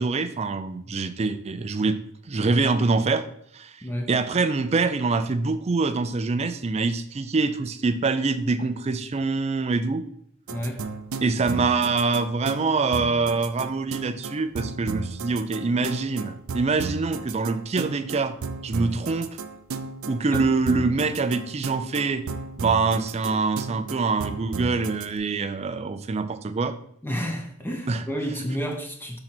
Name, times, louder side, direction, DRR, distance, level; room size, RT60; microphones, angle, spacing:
voice 1, 0.0-2.0 2.3-3.2 3.5-3.7 4.1-10.0 11.2-18.4 18.6-19.3 20.1-22.2 22.6-26.7 27.9-28.0, right 4 dB, 30° right, 0.4 m, -25 dB
voice 2, 3.8-4.1 10.5-10.9 18.9-19.0 20.3-20.5 27.0-29.2, equal, 10° left, 0.8 m, -30 dB
sound 1, 10.5-25.1, right 4 dB, 80° right, 0.5 m, -34 dB
5.9 x 3.9 x 5.9 m
head